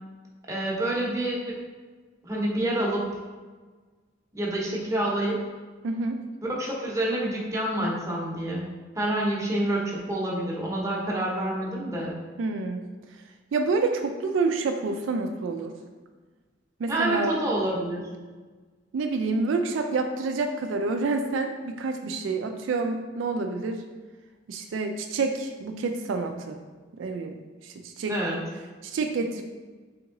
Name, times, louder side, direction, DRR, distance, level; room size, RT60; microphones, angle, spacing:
voice 1, 0.5-1.6 2.2-3.1 4.3-5.4 6.4-8.6 9.0-12.1 16.9-18.1 28.1-28.4, right 1 dB, 15° right, -4 dB, 0.7 m, -27 dB
voice 2, 5.8-6.2 12.4-12.9 13.5-15.7 16.8-17.4 18.9-23.8 24.5-26.6 26.9-27.4 27.6-28.2 28.8-29.4, right 3 dB, 80° right, 5 dB, 0.3 m, -28 dB
3.5 x 3.0 x 3.7 m, 1.4 s
head